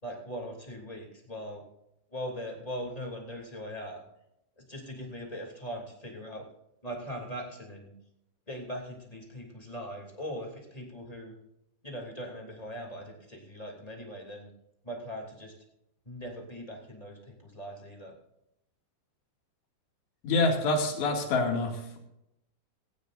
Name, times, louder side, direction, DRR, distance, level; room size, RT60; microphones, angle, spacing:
voice 1, 0.0-1.6 2.1-4.0 4.6-6.5 6.8-7.9 8.5-11.3 11.8-14.5 14.8-15.5 16.0-18.1, equal, 10° left, 0 dB, 2.0 m, -40 dB
voice 2, 20.2-22.0, left 3 dB, 70° left, 2 dB, 4.4 m, -26 dB
17.5 x 16.5 x 2.6 m, 0.83 s
omnidirectional pair, 5.3 m